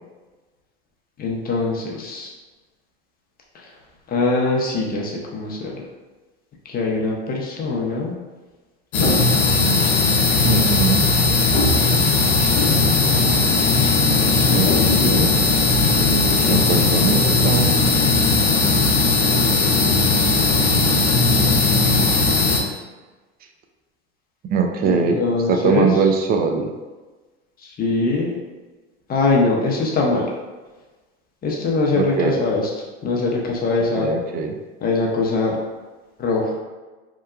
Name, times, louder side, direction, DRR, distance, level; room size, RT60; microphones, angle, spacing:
voice 1, 1.2-2.3 3.5-3.6 4.1-5.7 6.6-8.1 14.7-15.3 24.8-25.9 27.6-28.3 29.1-30.3 31.4-32.7 33.0-34.1 34.8-35.6 36.2-36.6, left 3 dB, 30° left, -2 dB, 0.6 m, -22 dB
sound 1, 8.9-22.6, left 3 dB, 75° left, 0.6 m, -17 dB
voice 2, 10.4-11.1 14.5-15.5 16.4-17.8 24.5-25.2 25.5-26.7 32.0-32.4 33.9-34.6, right 5 dB, 30° right, 4 dB, 0.4 m, -22 dB
2.9 x 2.1 x 2.3 m, 1.3 s
hypercardioid pair, 90°, 33 cm